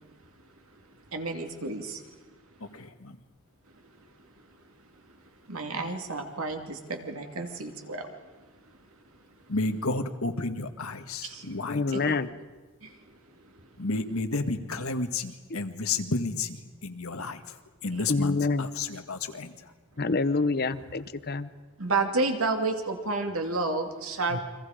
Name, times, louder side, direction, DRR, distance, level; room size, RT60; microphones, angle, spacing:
voice 1, 0.7-2.2 2.7-2.8 3.7-9.5 11.2-11.6 11.9-12.4 12.8-13.7 17.9-18.3 20.7-20.8 21.2-21.3 21.8-24.4, right 3 dB, 75° right, 4 dB, 2.6 m, -33 dB
voice 2, 2.7-3.1 9.5-11.8 13.8-16.6 16.8-17.4 17.8-19.5 24.3-24.4, left 3 dB, 75° left, 7 dB, 1.6 m, -31 dB
voice 3, 11.7-12.3 18.1-18.7 20.0-21.5, left 3 dB, 45° left, 14 dB, 0.8 m, -27 dB
30.0 x 24.0 x 5.1 m, 1.3 s
head